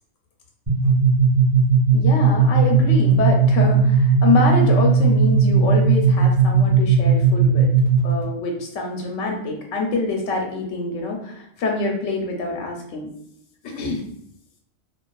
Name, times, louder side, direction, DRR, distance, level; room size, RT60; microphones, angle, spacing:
sound 1, 0.7-8.2, right 5 dB, 25° right, 1.0 m, -17 dB
voice 1, 1.9-7.7 8.0-13.1 13.6-14.0, left 3 dB, 80° left, 1 dB, 0.9 m, -25 dB
2.5 x 2.3 x 2.2 m, 0.71 s
omnidirectional pair, 1.3 m